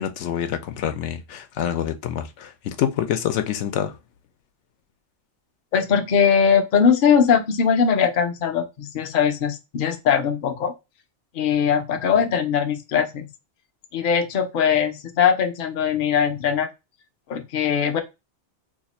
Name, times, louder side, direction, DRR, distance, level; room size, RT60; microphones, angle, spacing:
voice 1, 0.0-3.9, left 9 dB, 90° left, 0.9 m, -26 dB
voice 2, 5.7-10.7 11.3-13.3 13.9-16.7 17.3-18.0, left 7 dB, 55° left, 0.7 m, -20 dB
2.8 x 2.4 x 4.0 m
omnidirectional pair, 1.2 m